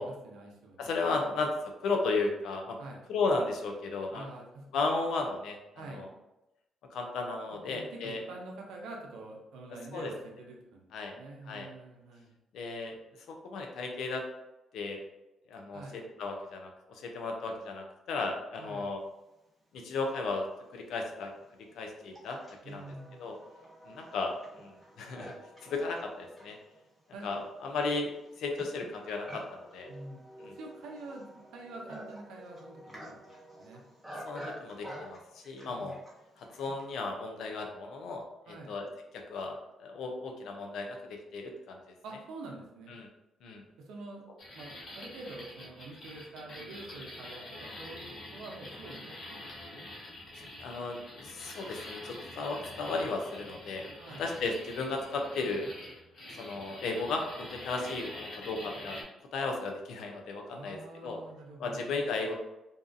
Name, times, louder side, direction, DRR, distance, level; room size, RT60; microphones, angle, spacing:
voice 1, 0.0-1.4 2.8-3.0 4.1-4.7 5.8-6.1 7.5-10.8 11.1-12.3 15.7-16.0 18.6-18.9 22.6-23.3 27.1-27.3 29.9-30.2 30.5-33.8 35.7-35.9 38.5-38.8 42.0-42.9 43.8-44.2 44.5-49.9 54.0-54.3 60.5-62.3, right 2 dB, 85° right, 0 dB, 0.6 m, -46 dB
voice 2, 0.8-1.5 1.8-2.8 3.1-4.3 4.7-5.6 5.9-6.1 6.9-8.2 9.9-10.1 10.9-11.1 11.5-11.7 12.5-13.0 13.3-14.2 14.7-15.0 15.5-19.0 19.7-20.5 20.7-21.3 21.7-22.4 22.7-22.8 23.2-23.4 23.8-24.7 25.0-25.3 25.6-26.6 27.2-28.1 28.4-29.9 30.4-30.5 34.2-36.0 36.4-38.9 39.3-41.9 42.9-43.1 43.4-43.6 50.6-53.8 54.2-55.7 56.4-59.0 59.3-61.2 61.6-62.3, left 3 dB, 75° left, 2 dB, 0.5 m, -34 dB
Livestock farm animals working animals, 20.2-20.3 21.0-36.9, equal, 5° left, 1.1 m, -49 dB
sound 1, 44.4-59.0, left 1 dB, 60° left, 0.9 m, -46 dB
2.7 x 2.3 x 2.5 m, 0.94 s
cardioid pair, 90°, 0 cm